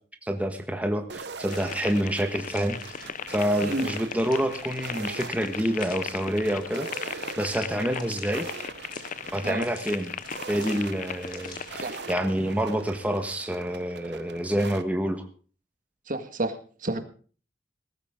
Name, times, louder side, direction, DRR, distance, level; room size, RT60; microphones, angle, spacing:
voice 1, 0.2-8.5 9.3-10.1 10.5-15.2, equal, 10° right, 5 dB, 1.4 m, -28 dB
sound 1, 1.1-14.8, right 4 dB, 70° right, 1.0 m, -42 dB
sound 2, 1.4-11.9, left 3 dB, 25° left, 3.4 m, -50 dB
sound 3, 1.5-12.2, left 7 dB, 45° left, 0.6 m, -38 dB
voice 2, 3.6-3.9 9.4-9.7 11.8-12.0 16.1-16.6 16.8-17.0, right 2 dB, 50° right, 8 dB, 1.8 m, -29 dB
17.5 x 14.5 x 3.7 m, 0.39 s
head